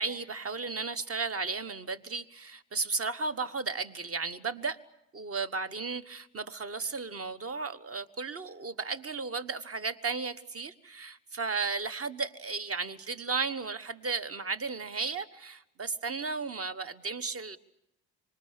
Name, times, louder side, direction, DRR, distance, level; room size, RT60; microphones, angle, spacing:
voice 1, 0.0-4.8 5.1-17.6, right 4 dB, 30° right, 14 dB, 1.3 m, -34 dB
26.0 x 24.5 x 8.3 m, 0.85 s
figure-of-eight pair, 50°, 50 cm